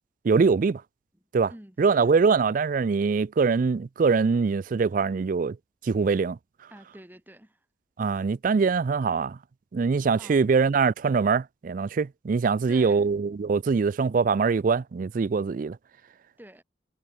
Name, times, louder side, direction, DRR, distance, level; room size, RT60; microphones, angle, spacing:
voice 1, 0.2-0.8 1.3-1.5 1.8-5.6 5.8-6.4 8.0-9.4 9.7-15.8, right 5 dB, 45° right, 0.4 m, -23 dB
voice 2, 1.5-2.1 6.7-7.7 10.2-10.5 12.7-13.0 16.4-16.6, right 1 dB, 10° right, 2.1 m, -48 dB
head